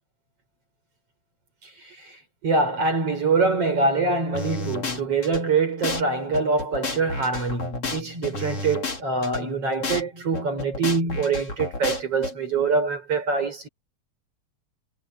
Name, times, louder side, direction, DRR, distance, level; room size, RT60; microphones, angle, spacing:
voice 1, 1.6-2.2 2.4-13.7, right 4 dB, 50° right, 5.9 m, -24 dB
sound 1, 4.3-5.4 5.8-6.0 6.3-9.4 9.8-10.0 10.3-12.3, left 3 dB, 50° left, 5.8 m, -31 dB
omnidirectional pair, 3.4 m